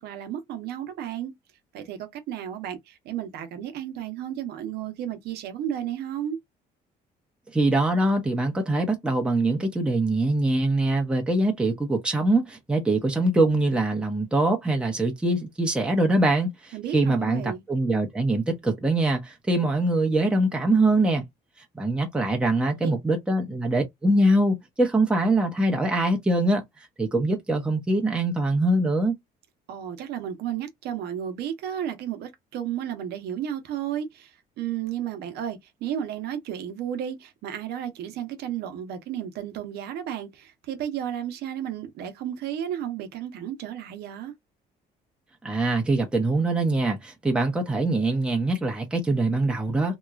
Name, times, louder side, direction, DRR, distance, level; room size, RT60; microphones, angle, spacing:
voice 1, 0.0-1.3 1.7-6.4 16.7-17.6 22.8-22.9 29.7-44.3, right 10 dB, 75° right, 0.8 m, -33 dB
voice 2, 7.5-21.2 21.7-26.6 27.0-29.1 45.4-50.0, right 2 dB, 5° right, 0.8 m, -23 dB
2.9 x 2.2 x 2.3 m
cardioid pair, 110°, 17 cm